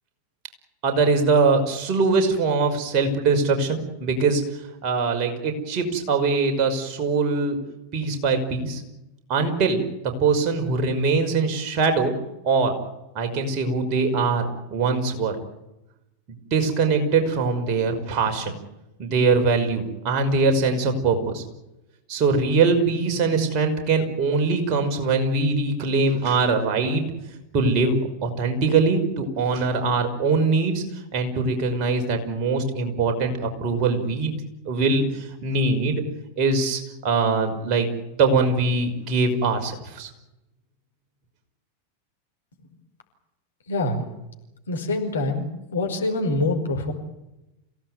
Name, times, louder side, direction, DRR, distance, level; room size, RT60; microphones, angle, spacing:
voice 1, 0.8-4.5 4.8-7.6 7.9-8.8 9.3-9.8 10.2-12.2 12.4-12.7 13.1-14.4 14.7-15.4 16.5-18.6 19.0-21.4 22.1-27.0 27.5-28.0 28.2-30.8 31.1-34.4 34.7-36.0 36.4-37.9 38.1-40.1, right 4 dB, 40° right, 4 dB, 5.6 m, -22 dB
voice 2, 43.7-44.0 44.7-46.9, left 2 dB, 70° left, 3 dB, 5.3 m, -25 dB
27.5 x 17.5 x 9.5 m, 0.94 s
figure-of-eight pair, 90°, 0 cm